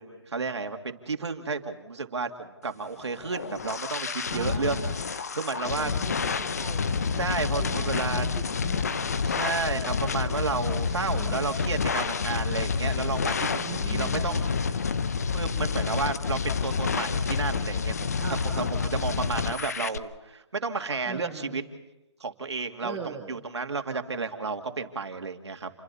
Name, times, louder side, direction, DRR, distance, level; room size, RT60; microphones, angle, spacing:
voice 1, 0.0-4.8 5.3-5.9 7.2-8.2 9.2-14.4 15.3-18.2 18.6-21.6 22.2-23.0 23.3-25.8, right 4 dB, 75° right, 5 dB, 2.5 m, -32 dB
sound 1, 3.0-20.0, left 5 dB, 35° left, 0.7 m, -29 dB
voice 2, 4.3-4.9 5.8-7.2 7.5-9.2 10.9-11.5 13.5-14.5 18.2-19.3 21.0-21.6 22.8-23.4, right 6 dB, 5° right, -1 dB, 0.6 m, -41 dB
29.0 x 23.0 x 4.2 m, 0.98 s
hypercardioid pair, 175°, 15 cm